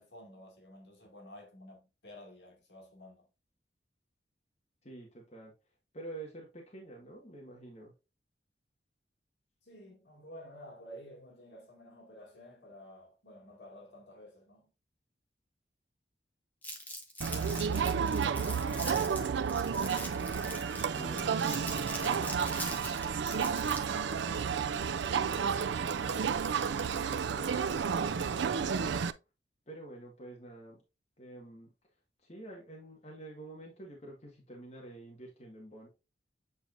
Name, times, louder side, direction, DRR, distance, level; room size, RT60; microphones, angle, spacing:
voice 1, 0.0-3.3 9.6-14.7 20.9-23.2, left 1 dB, 75° left, 2.2 m, -52 dB
voice 2, 4.8-5.5 5.9-7.9 20.8-21.7 27.0-27.8 29.7-30.8 31.2-31.7 32.2-35.9, right 2 dB, 35° left, 1.6 m, -48 dB
Crumpling crinkling, 16.6-24.0, equal, 10° left, 1.4 m, -42 dB
Crowd, 17.2-29.1, right 6 dB, 80° right, 0.5 m, -31 dB
8.5 x 4.5 x 2.5 m
head